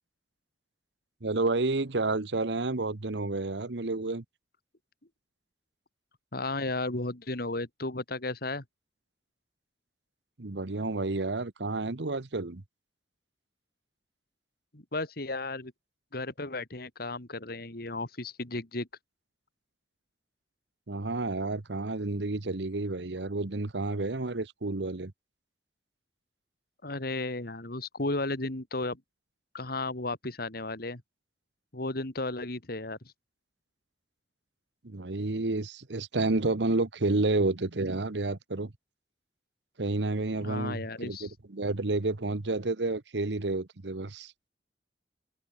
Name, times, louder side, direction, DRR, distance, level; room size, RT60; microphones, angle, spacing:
voice 1, 1.2-4.2 10.4-12.6 20.9-25.1 34.8-38.7 39.8-44.3, right 2 dB, 80° right, 1.2 m, -30 dB
voice 2, 6.3-8.6 14.7-15.7 16.1-18.9 26.8-29.0 29.5-31.0 31.7-33.0 40.4-41.3, left 2 dB, 60° left, 2.8 m, -34 dB
head